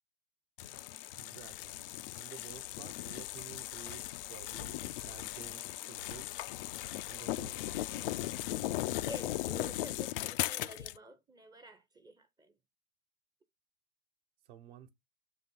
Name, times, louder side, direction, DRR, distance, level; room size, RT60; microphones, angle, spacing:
sound 1, 0.6-11.0, left 15 dB, 45° left, 0.4 m, -38 dB
voice 1, 1.1-1.9 2.1-6.4 7.0-7.9 14.5-14.9, right 10 dB, 50° right, 1.3 m, -53 dB
voice 2, 9.0-12.5, right 1 dB, 10° right, 0.7 m, -50 dB
6.0 x 4.2 x 5.5 m
hypercardioid pair, 105°, 42 cm